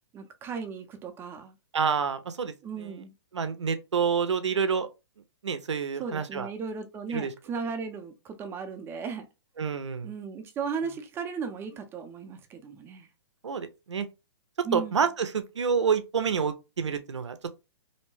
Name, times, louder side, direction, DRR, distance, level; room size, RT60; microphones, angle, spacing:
voice 1, 0.1-1.5 2.6-3.1 6.0-9.3 10.0-13.1 14.6-15.0, right 5 dB, 15° right, 0.4 m, -36 dB
voice 2, 1.7-2.5 2.8-2.9 3.3-4.9 5.4-6.5 7.1-7.3 9.6-10.1 13.4-14.1 14.7-17.5, right 6 dB, 90° right, 0.5 m, -28 dB
2.7 x 2.1 x 3.0 m
hypercardioid pair, 130°, 15 cm